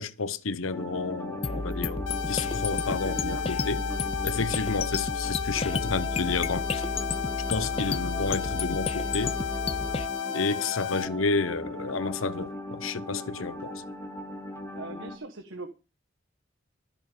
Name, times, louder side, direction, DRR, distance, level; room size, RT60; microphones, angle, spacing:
voice 1, 0.0-3.8 4.2-6.8 7.5-9.4 10.3-13.8, left 4 dB, 90° left, 0.9 m, -31 dB
sound 1, 0.7-15.2, left 1 dB, 15° left, 1.5 m, -39 dB
sound 2, 1.4-10.1, left 3 dB, 30° left, 0.5 m, -32 dB
voice 2, 1.8-2.2 2.7-3.5 3.8-4.0 10.3-10.4 13.0-13.7 14.7-15.7, right 2 dB, 75° right, 1.4 m, -41 dB
sound 3, 2.1-11.1, left 8 dB, 70° left, 1.4 m, -33 dB
13.0 x 7.0 x 6.8 m
head